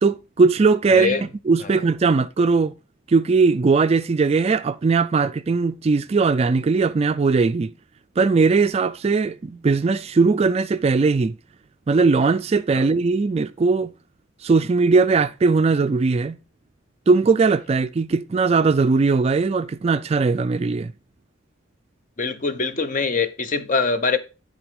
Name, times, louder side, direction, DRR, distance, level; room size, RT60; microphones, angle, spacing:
voice 1, 0.0-2.7 3.1-7.7 8.2-11.3 11.9-13.9 14.4-16.4 17.1-20.9, right 4 dB, 30° right, 0.3 m, -19 dB
voice 2, 22.2-24.2, left 4 dB, 40° left, 0.7 m, -23 dB
10.0 x 3.9 x 5.1 m
head